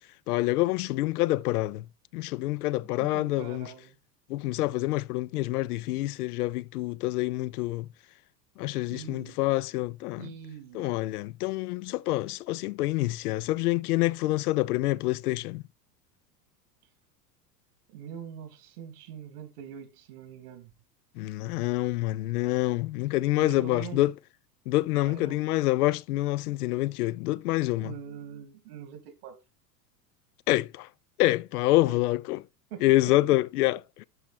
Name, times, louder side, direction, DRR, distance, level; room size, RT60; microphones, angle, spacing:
voice 1, 0.3-1.8 2.1-3.7 4.3-7.9 8.6-10.3 10.7-15.6 21.2-24.1 24.7-27.9 30.5-30.9 31.2-32.4 32.8-34.0, left 17 dB, 65° left, 0.6 m, -27 dB
voice 2, 3.0-4.0 8.9-9.4 10.2-10.9 17.9-20.7 23.3-24.0 25.0-25.4 27.8-29.4 31.8-32.0 32.7-33.4, right 8 dB, 65° right, 2.9 m, -43 dB
12.0 x 4.2 x 4.3 m
hypercardioid pair, 90°, 50 cm